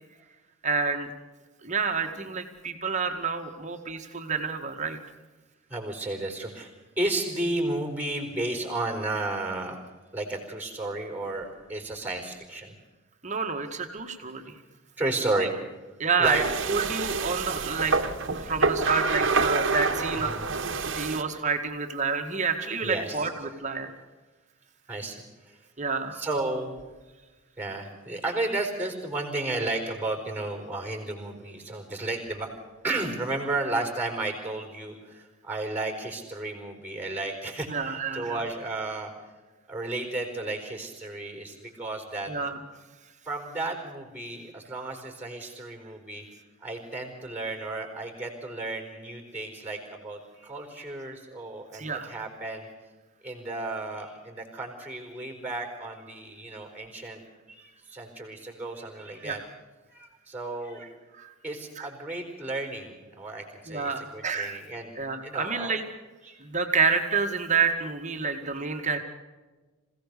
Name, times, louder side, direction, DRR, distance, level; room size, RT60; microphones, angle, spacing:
voice 1, 0.6-1.1 1.6-5.0 13.2-14.5 15.3-15.5 16.0-16.4 16.7-20.6 20.9-23.9 25.8-26.2 37.7-38.4 42.3-42.6 51.7-52.1 59.2-59.4 61.1-61.3 61.8-61.9 63.7-64.6 65.0-65.8 66.4-69.0, right 5 dB, 35° right, 5 dB, 2.0 m, -29 dB
voice 2, 5.7-6.7 7.0-9.8 10.1-12.7 15.0-15.5 16.2-16.4 20.3-20.5 22.8-23.3 24.9-25.6 26.1-26.7 27.6-32.5 32.8-39.1 39.7-42.3 43.2-46.2 46.6-52.7 53.2-57.2 57.5-59.4 59.9-60.9 61.4-64.9 65.2-65.7 66.2-66.4 68.7-68.8, right 2 dB, 10° right, 3 dB, 4.6 m, -33 dB
sound 1, 16.2-21.2, right 4 dB, 55° right, 1.7 m, -27 dB
27.0 x 17.0 x 6.8 m, 1.3 s
head